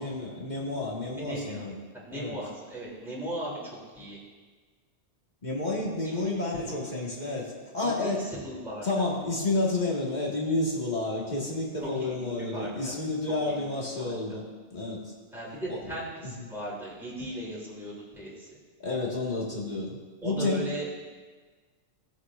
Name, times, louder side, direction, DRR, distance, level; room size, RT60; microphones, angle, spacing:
voice 1, 0.0-1.8 2.1-2.3 5.4-8.3 8.8-14.4 14.7-15.1 15.7-15.8 16.2-16.5 18.8-20.0 20.2-20.7, left 2 dB, 40° left, -3 dB, 1.8 m, -30 dB
voice 2, 1.2-1.7 1.9-4.2 6.0-6.4 7.8-8.9 11.8-12.2 12.5-12.9 13.3-13.7 14.0-14.1 15.3-18.5 20.2-20.9, right 1 dB, ahead, -8 dB, 3.0 m, -37 dB
17.0 x 7.8 x 2.5 m, 1.4 s
omnidirectional pair, 1.2 m